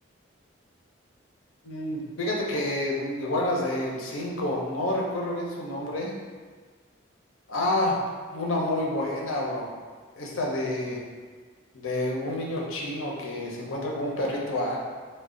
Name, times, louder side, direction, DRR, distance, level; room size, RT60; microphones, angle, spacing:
voice 1, 1.6-6.1 7.5-7.9 8.3-9.7 10.1-11.0 11.7-14.8, left 1 dB, 80° left, -2 dB, 0.6 m, -29 dB
3.2 x 2.2 x 3.7 m, 1.5 s
head